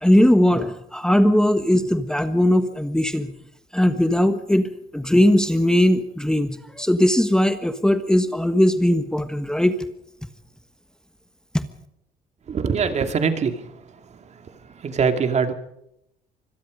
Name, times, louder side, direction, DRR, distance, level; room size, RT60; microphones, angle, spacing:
voice 1, 0.0-3.3 3.7-9.8 11.5-11.6, left 1 dB, 5° left, 9 dB, 1.4 m, -19 dB
voice 2, 12.5-13.5 14.8-15.5, right 6 dB, 40° right, 7 dB, 2.5 m, -22 dB
25.5 x 21.5 x 5.2 m, 0.81 s
cardioid pair, 110°, 17 cm